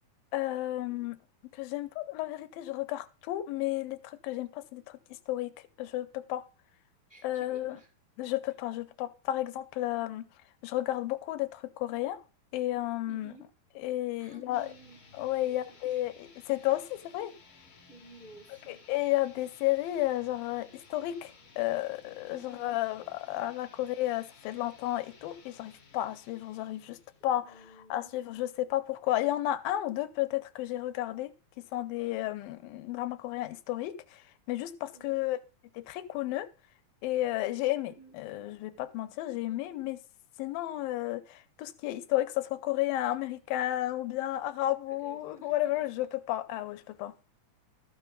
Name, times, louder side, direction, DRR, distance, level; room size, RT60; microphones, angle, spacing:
voice 1, 0.3-1.2 1.5-5.0 5.3-5.5 5.8-6.4 7.2-7.8 8.2-10.2 10.6-12.2 12.5-13.3 13.8-14.7 15.1-17.3 18.7-27.0 27.2-27.6 27.9-35.4 35.7-36.5 37.0-40.0 40.4-47.1, left 15 dB, 90° left, 2.5 m, -32 dB
voice 2, 7.1-7.9 13.1-13.5 14.2-15.0 15.4-16.0 17.9-18.8 22.3-22.7 27.3-28.1 34.9-35.3 37.8-38.1 39.4-39.8 44.9-46.1, right 3 dB, 25° left, 1.1 m, -54 dB
sound 1, 14.5-27.4, left 4 dB, 45° left, 2.3 m, -57 dB
13.5 x 5.5 x 5.3 m
omnidirectional pair, 4.1 m